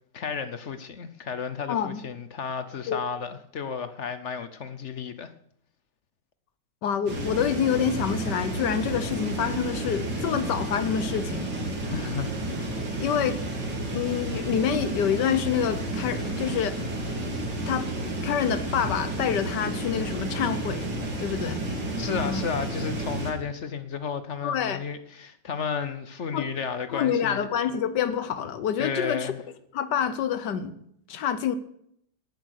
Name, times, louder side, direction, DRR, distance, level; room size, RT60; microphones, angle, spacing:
voice 1, 0.1-5.3 11.9-12.3 13.0-13.1 22.0-27.5 28.8-29.4, left 6 dB, 50° left, 0.9 m, -33 dB
voice 2, 1.7-2.0 2.9-3.0 6.8-11.5 13.0-13.4 13.8-16.8 17.7-17.9 18.2-20.9 21.2-21.6 22.1-22.4 24.4-24.8 26.3-26.5 26.9-29.3 29.7-30.7 31.1-31.6, left 8 dB, 70° left, 1.5 m, -27 dB
sound 1, 7.1-23.3, right 1 dB, 80° right, 3.3 m, -31 dB
17.0 x 8.0 x 6.5 m
omnidirectional pair, 1.9 m